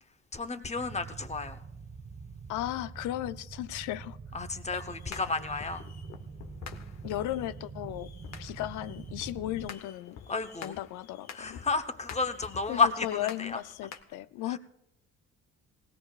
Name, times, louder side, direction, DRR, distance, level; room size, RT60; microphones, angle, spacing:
voice 1, 0.3-1.6 4.3-5.9 10.3-10.8 11.3-13.6 14.5-14.6, left 4 dB, 20° left, 0.8 m, -31 dB
sound 1, 0.7-9.7, right 5 dB, 25° right, 0.6 m, -45 dB
voice 2, 2.5-4.2 7.0-8.1 8.4-10.2 10.6-11.6 12.7-14.6, left 14 dB, 80° left, 0.5 m, -35 dB
sound 2, 4.9-14.0, left 7 dB, 60° left, 0.9 m, -48 dB
19.0 x 16.5 x 2.4 m
cardioid pair, 90°, 30 cm